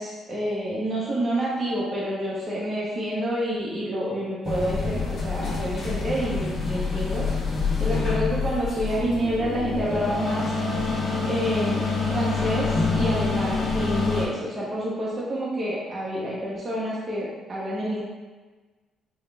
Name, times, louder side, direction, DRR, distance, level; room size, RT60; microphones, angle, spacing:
voice 1, 0.0-7.3 7.8-10.5 11.2-18.0, right 1 dB, 25° right, -6 dB, 0.7 m, -28 dB
sound 1, 4.4-14.3, left 4 dB, 40° left, 0.9 m, -26 dB
5.0 x 2.3 x 3.3 m, 1.3 s
cardioid pair, 150°, 0 cm